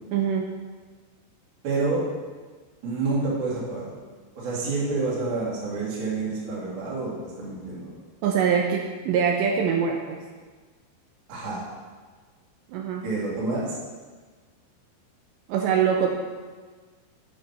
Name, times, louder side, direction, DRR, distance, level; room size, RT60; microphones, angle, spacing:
voice 1, 0.1-0.5 8.2-10.2 12.7-13.1 15.5-16.1, right 7 dB, 85° right, 1 dB, 2.6 m, -23 dB
voice 2, 1.6-2.1 2.8-4.0 4.4-7.9 11.3-11.6 13.0-13.7, right 3 dB, 50° right, -7 dB, 2.9 m, -28 dB
8.4 x 6.3 x 5.9 m, 1.4 s
omnidirectional pair, 5.7 m